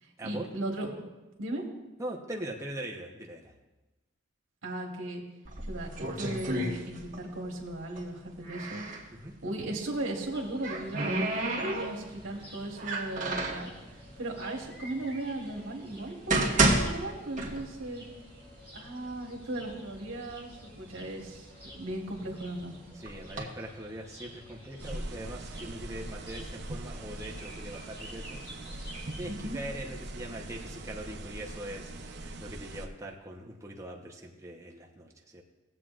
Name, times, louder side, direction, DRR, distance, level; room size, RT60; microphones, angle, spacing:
voice 1, 0.0-0.9 1.4-1.6 4.6-5.2 5.6-8.8 9.4-11.2 11.6-13.7 14.2-16.5 16.7-18.0 18.7-21.5 21.8-22.7 29.3-29.6, right 1 dB, 80° right, -1 dB, 1.4 m, -37 dB
voice 2, 2.0-3.5 9.1-9.3 23.0-28.4 29.1-35.4, right 1 dB, 15° right, -2 dB, 0.9 m, -41 dB
sound 1, 5.4-7.3 7.6-9.1 10.2-12.2 12.8-13.7 14.5-14.6 15.2-15.3 16.0-18.0 18.3-18.4 19.1-19.2 19.6-20.2 20.7-22.4 23.1-23.4, right 2 dB, 40° right, 1.5 m, -30 dB
sound 2, 10.3-29.4, equal, 10° left, 3.2 m, -51 dB
sound 3, 24.8-32.9, right 1 dB, 60° right, 0.8 m, -41 dB
18.0 x 7.6 x 2.5 m, 1.1 s
head